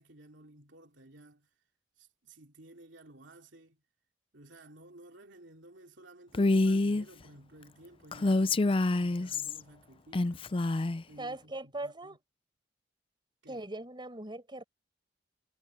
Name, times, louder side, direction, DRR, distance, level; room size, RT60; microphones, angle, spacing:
voice 1, 0.0-1.5 2.0-3.8 4.3-10.6 11.1-12.2 13.4-13.6, right 1 dB, 75° right, 3.1 m, -55 dB
Female speech woman speaking, 6.3-7.0 8.1-9.6 10.1-11.0, left 2 dB, 30° left, 0.5 m, -27 dB
voice 2, 11.2-12.2 13.5-14.6, right 2 dB, 25° right, 5.2 m, -40 dB
head